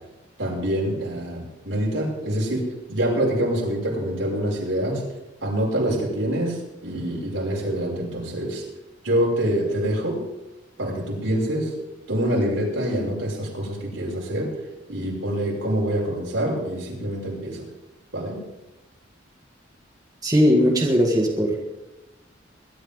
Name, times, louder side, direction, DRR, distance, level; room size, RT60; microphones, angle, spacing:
voice 1, 0.4-5.0 5.4-8.6 9.0-10.2 10.8-11.7 12.1-14.5 14.9-17.6 18.1-18.4, right 1 dB, 85° right, -3 dB, 6.0 m, -25 dB
voice 2, 20.2-21.7, equal, 20° right, 0 dB, 1.8 m, -19 dB
22.5 x 12.0 x 3.8 m, 1.0 s
head